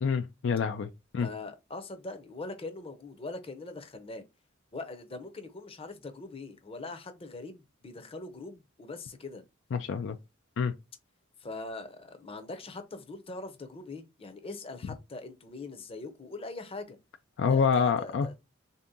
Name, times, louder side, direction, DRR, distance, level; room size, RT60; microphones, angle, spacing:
voice 1, 0.0-1.3 9.7-10.2 10.6-10.7 17.4-18.3, left 6 dB, 65° left, 0.4 m, -27 dB
voice 2, 1.2-4.2 4.7-9.4 11.4-17.0 17.5-18.3, left 3 dB, 30° left, 0.7 m, -42 dB
3.5 x 2.8 x 3.6 m
head